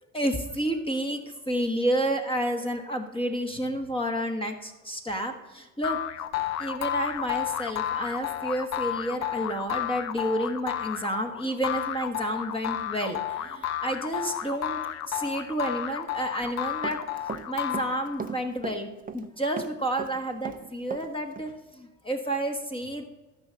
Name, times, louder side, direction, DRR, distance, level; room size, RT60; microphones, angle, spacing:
voice 1, 0.1-6.0 6.6-17.0 17.5-23.0, right 1 dB, 10° left, 4 dB, 1.3 m, -30 dB
sound 1, 5.8-18.4, left 11 dB, 40° left, 0.8 m, -32 dB
Run, 16.4-17.5 17.7-19.3 19.6-21.1 21.4-21.5, right 6 dB, 20° right, 0.8 m, -37 dB
12.5 x 5.5 x 6.3 m, 1.2 s
hypercardioid pair, 75°, 44 cm